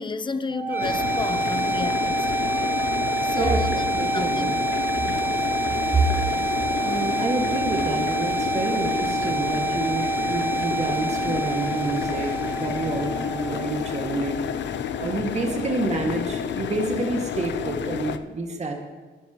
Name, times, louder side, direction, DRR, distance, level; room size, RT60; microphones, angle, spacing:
voice 1, 0.0-3.8 4.1-4.5 5.1-5.4, left 3 dB, 25° left, 0.7 m, -33 dB
sound 1, 0.5-14.5, right 3 dB, 10° right, 0.4 m, -27 dB
sound 2, 0.8-18.2, left 8 dB, 65° left, 0.8 m, -30 dB
voice 2, 3.4-4.6 5.9-6.0 6.8-14.4 15.0-18.7, right 3 dB, 35° right, 2.1 m, -28 dB
20.5 x 10.5 x 3.1 m
cardioid pair, 90°, 20 cm